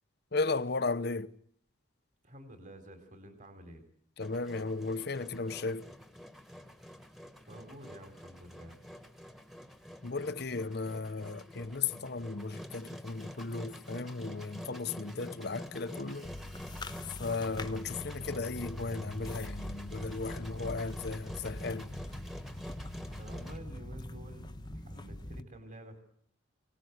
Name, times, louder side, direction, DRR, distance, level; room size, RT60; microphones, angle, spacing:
voice 1, 0.3-1.3 4.2-5.9 10.0-16.3 17.2-21.9, left 3 dB, 55° left, 0.9 m, -35 dB
voice 2, 2.2-3.8 7.5-8.8 23.2-24.5 24.7-26.0, right 1 dB, 40° right, 3.7 m, -50 dB
Engine, 4.2-23.6, left 1 dB, ahead, 1.6 m, -47 dB
sound 1, 16.2-25.4, left 1 dB, 20° left, 1.1 m, -43 dB
24.0 x 19.0 x 8.1 m
head